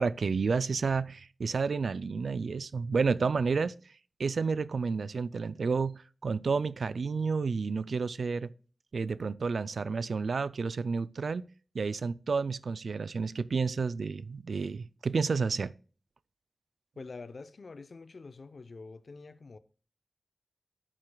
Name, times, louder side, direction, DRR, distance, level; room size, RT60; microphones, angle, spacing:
voice 1, 0.0-3.7 4.2-8.5 8.9-11.5 11.7-15.7, right 4 dB, 75° right, 0.3 m, -30 dB
voice 2, 17.0-19.6, left 3 dB, 65° left, 0.6 m, -46 dB
11.0 x 7.5 x 2.3 m
cardioid pair, 40°, 0 cm